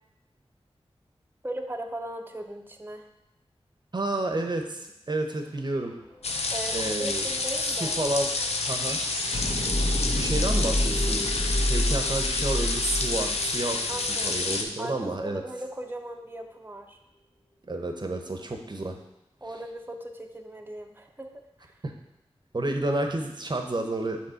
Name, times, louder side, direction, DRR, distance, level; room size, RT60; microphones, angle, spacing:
voice 1, 1.4-3.0 6.5-8.0 13.9-14.4 14.8-17.0 18.2-18.3 19.4-21.3 21.6-21.7, right 1 dB, 20° right, 3 dB, 0.7 m, -38 dB
voice 2, 3.9-5.9 6.7-7.3 8.0-8.3 8.7-9.0 10.2-11.2 11.7-13.8 14.2-15.4 17.7-18.9 21.8-21.9 22.5-24.2, right 2 dB, 45° right, 4 dB, 0.8 m, -30 dB
sound 1, 5.9-6.0 6.3-14.5, left 1 dB, 55° left, 1.5 m, -29 dB
sound 2, 6.2-14.6, left 3 dB, 75° left, 0.6 m, -29 dB
5.5 x 3.3 x 5.6 m, 0.87 s
cardioid pair, 40°, 11 cm